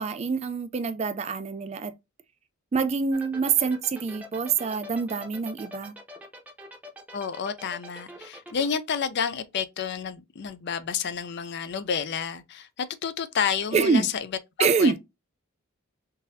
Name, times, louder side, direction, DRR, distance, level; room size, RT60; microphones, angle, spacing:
voice 1, 0.0-1.9 2.7-5.9 13.7-14.1 14.6-15.0, right 5 dB, 30° right, 0.3 m, -25 dB
sound 1, 3.1-8.8, equal, 5° right, 0.7 m, -43 dB
voice 2, 7.1-14.3 14.6-15.0, left 7 dB, 50° left, 0.4 m, -30 dB
3.8 x 2.6 x 2.6 m
head